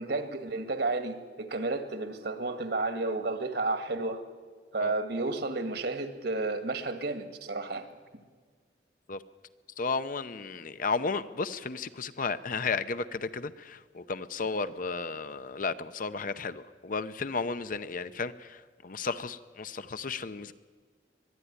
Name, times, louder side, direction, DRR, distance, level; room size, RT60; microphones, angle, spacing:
voice 1, 0.0-4.2 4.7-7.9, right 3 dB, 65° right, 8 dB, 1.8 m, -32 dB
voice 2, 9.8-20.5, left 4 dB, 50° left, 12 dB, 0.7 m, -33 dB
22.0 x 12.5 x 9.7 m, 1.5 s
head